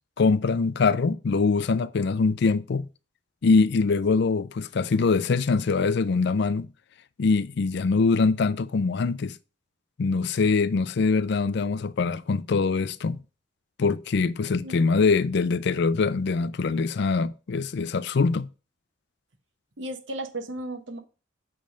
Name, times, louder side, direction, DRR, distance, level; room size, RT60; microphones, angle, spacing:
voice 1, 0.2-2.9 3.4-6.7 7.2-9.4 10.0-13.2 13.8-18.5, left 4 dB, 60° left, 0.4 m, -23 dB
voice 2, 14.6-15.1 19.8-21.0, right 1 dB, 65° right, 1.0 m, -35 dB
7.8 x 3.4 x 5.0 m
head